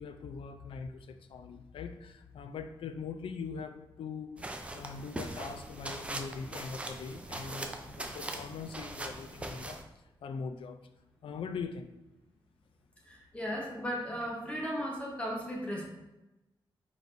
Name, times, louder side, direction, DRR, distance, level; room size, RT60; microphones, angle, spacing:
voice 1, 0.0-9.8 10.2-10.8 11.2-11.9, left 5 dB, 75° left, 8 dB, 0.4 m, -42 dB
sound 1, 4.4-9.8, right 1 dB, 15° right, 0.4 m, -41 dB
voice 2, 13.1-15.8, equal, 15° left, -3 dB, 1.0 m, -36 dB
4.6 x 4.1 x 2.6 m, 0.99 s
wide cardioid pair, 155°, 9 cm